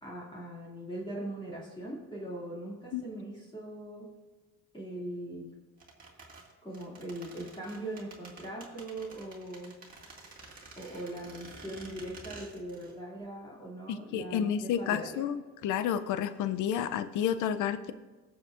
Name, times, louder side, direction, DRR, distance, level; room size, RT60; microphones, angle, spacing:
voice 1, 0.0-4.1 4.7-5.5 6.6-9.7 10.8-15.2, right 1 dB, 15° left, -5 dB, 2.5 m, -40 dB
sound 1, 5.8-13.0 13.2-13.3, right 3 dB, 30° right, 2.2 m, -50 dB
voice 2, 13.9-17.9, left 9 dB, 80° left, 12 dB, 0.5 m, -31 dB
20.0 x 7.1 x 2.5 m, 1.2 s
cardioid pair, 90°, 30 cm